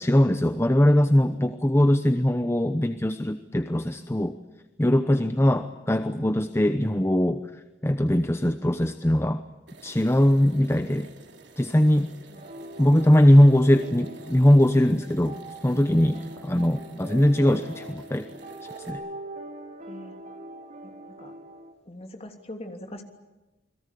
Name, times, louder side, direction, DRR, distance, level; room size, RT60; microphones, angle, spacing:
voice 1, 0.0-4.3 4.8-7.4 7.8-9.4 9.8-11.1 11.6-12.1 12.8-15.4 15.6-18.3 18.9-19.0, left 1 dB, 15° left, 9 dB, 0.9 m, -21 dB
sound 1, 9.7-18.9, right 2 dB, 65° right, 3.4 m, -50 dB
voice 2, 10.4-10.8 12.3-12.5 16.1-16.2 16.9-17.1 19.9-20.2 20.8-21.4 21.8-23.0, left 1 dB, 35° left, 5 dB, 3.2 m, -43 dB
sound 2, 12.3-21.7, right 1 dB, 40° right, 2.9 m, -42 dB
29.0 x 22.0 x 8.5 m, 1.1 s
head